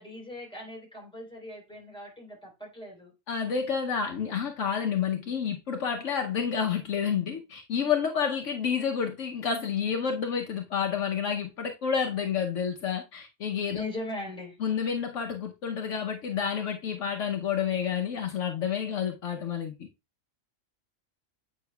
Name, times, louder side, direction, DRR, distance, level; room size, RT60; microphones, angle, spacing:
voice 1, 0.0-3.1 13.7-14.6, left 2 dB, 5° left, 3.3 m, -39 dB
voice 2, 3.3-13.8 14.6-19.9, left 7 dB, 70° left, 1.1 m, -29 dB
8.6 x 5.7 x 2.2 m
omnidirectional pair, 1.4 m